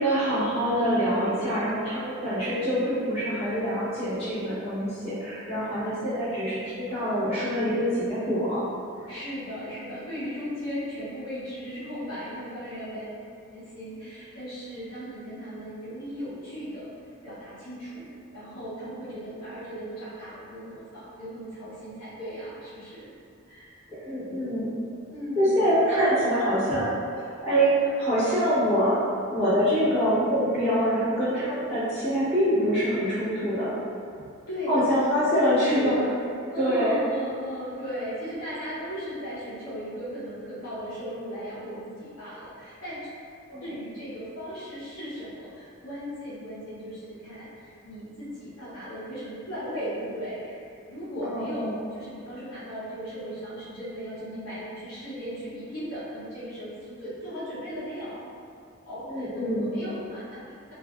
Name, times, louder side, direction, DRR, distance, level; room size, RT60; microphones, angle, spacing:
voice 1, 0.0-8.7 23.9-24.7 25.3-26.8 27.4-29.0 29.3-33.7 34.7-35.9 36.6-37.0 43.5-43.7 51.2-51.7 59.1-59.7, equal, 30° left, -14 dB, 1.1 m, -25 dB
voice 2, 9.1-13.2 13.5-16.9 17.2-23.1 23.4-23.8 25.1-25.8 26.7-26.8 34.2-34.8 35.3-36.2 36.5-43.1 43.6-50.6 50.9-58.2 58.8-60.7, equal, 80° left, -11 dB, 0.9 m, -37 dB
2.4 x 2.4 x 2.3 m, 2.4 s
head